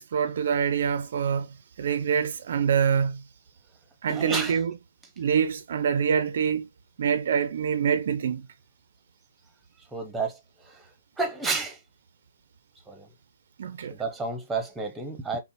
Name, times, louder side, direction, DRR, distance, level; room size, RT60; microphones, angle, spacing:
voice 1, 0.0-1.5 1.8-3.2 4.0-4.7 5.2-6.7 7.0-8.4 13.6-13.9, right 7 dB, 55° right, 0.4 m, -25 dB
voice 2, 4.1-4.6 9.9-10.4 10.7-10.9 11.2-11.8 12.9-13.1 13.9-15.4, right 4 dB, 5° right, 0.7 m, -30 dB
5.3 x 2.0 x 2.8 m
figure-of-eight pair, 130°, 0 cm